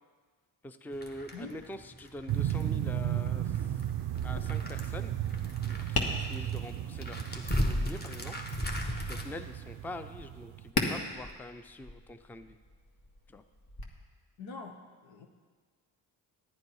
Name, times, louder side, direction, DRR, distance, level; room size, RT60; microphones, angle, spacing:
voice 1, 0.6-3.7 4.2-8.5 9.1-12.6 13.3-13.4, left 1 dB, 5° left, 10 dB, 0.5 m, -44 dB
sound 1, 0.9-9.2, equal, 20° left, 1.4 m, -37 dB
sound 2, 2.3-10.7, right 11 dB, 65° right, 0.5 m, -35 dB
Tap, 4.1-13.8, left 3 dB, 50° left, 1.7 m, -40 dB
voice 2, 14.4-14.8 15.0-15.3, left 3 dB, 80° left, 4 dB, 1.2 m, -43 dB
10.5 x 9.5 x 4.8 m, 1.5 s
supercardioid pair, 55°, 46 cm